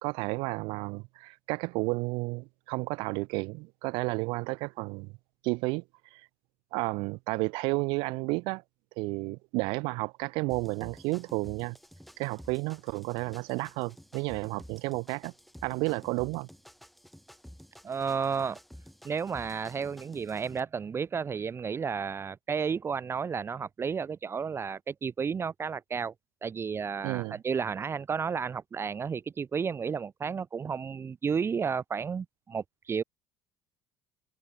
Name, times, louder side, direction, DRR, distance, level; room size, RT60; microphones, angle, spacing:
voice 1, 0.0-5.1 5.4-5.8 6.1-6.2 6.7-8.6 9.0-11.8 12.2-15.3 15.6-16.5 27.0-27.4, right 27 dB, 85° right, 0.9 m, -32 dB
sound 1, 10.5-20.6, equal, ahead, 4.5 m, -52 dB
voice 2, 17.8-18.6 19.0-26.1 26.4-33.0, right 6 dB, 30° right, 0.7 m, -32 dB
supercardioid pair, 100°, 8 cm